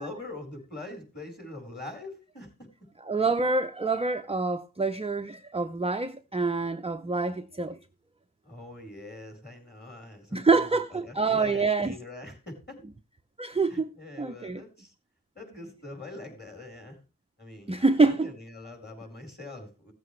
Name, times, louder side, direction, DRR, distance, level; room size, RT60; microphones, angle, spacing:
voice 1, 0.0-2.5 8.4-12.8 13.7-14.9 15.3-17.0 17.4-19.9, left 2 dB, 25° left, 4.3 m, -43 dB
voice 2, 3.0-7.8 10.3-12.0 13.4-13.9 14.2-14.6 17.7-18.3, right 3 dB, 15° right, 0.5 m, -26 dB
16.0 x 7.8 x 3.2 m
wide cardioid pair, 60°, 40 cm